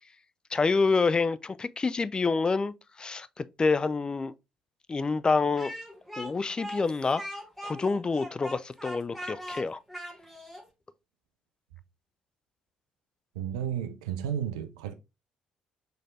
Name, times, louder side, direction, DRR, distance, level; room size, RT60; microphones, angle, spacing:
voice 1, 0.5-4.3 4.9-5.7 6.2-7.2 7.6-9.8, left 4 dB, 25° left, 0.3 m, -27 dB
Speech, 5.6-10.7, equal, ahead, 1.4 m, -40 dB
voice 2, 13.4-14.9, right 9 dB, 75° right, 0.4 m, -32 dB
5.6 x 3.3 x 2.3 m
figure-of-eight pair, 45°, 3 cm